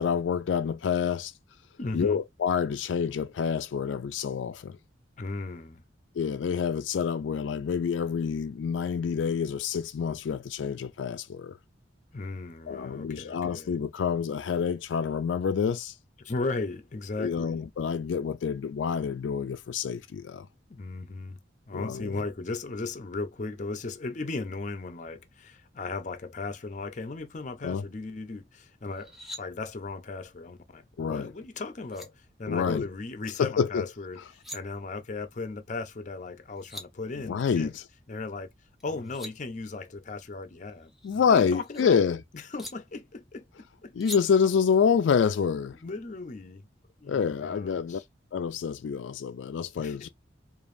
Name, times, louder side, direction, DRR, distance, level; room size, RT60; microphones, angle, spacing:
voice 1, 0.0-1.3 1.9-4.8 6.2-11.6 12.7-15.9 17.2-20.5 21.7-22.2 27.6-27.8 31.0-31.3 32.5-32.8 33.4-33.9 37.3-37.8 41.0-42.2 44.0-45.8 47.1-48.0 48.3-50.1, left 6 dB, 85° left, 0.4 m, -27 dB
voice 2, 1.8-2.2 5.2-5.8 12.1-13.8 16.2-17.6 20.7-21.4 21.7-37.7 38.1-38.5 38.8-40.9 41.3-42.1 42.3-43.9 45.8-46.7 47.0-48.0 49.8-50.1, left 3 dB, 40° left, 0.6 m, -37 dB
sound 1, 28.9-29.4 31.5-31.6 31.9-32.1 34.1-34.6 36.3-36.4 36.5-36.9 38.8-39.3 40.8-41.8 42.6-42.7 44.0-44.2, left 1 dB, ahead, 0.7 m, -42 dB
5.0 x 2.6 x 2.5 m
head